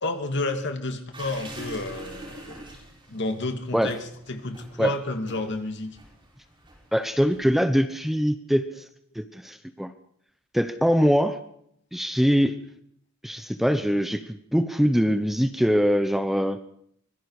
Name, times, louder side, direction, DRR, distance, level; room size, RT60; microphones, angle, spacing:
voice 1, 0.0-2.6 3.1-4.0 4.3-6.0, left 2 dB, 55° left, 5 dB, 2.5 m, -30 dB
sound 1, 1.1-7.6, right 1 dB, 25° right, 7.5 m, -45 dB
voice 2, 6.9-8.8 9.2-9.9 10.5-11.4 11.9-12.5 13.2-16.6, equal, ahead, 9 dB, 0.9 m, -23 dB
25.0 x 22.5 x 4.9 m, 0.68 s
head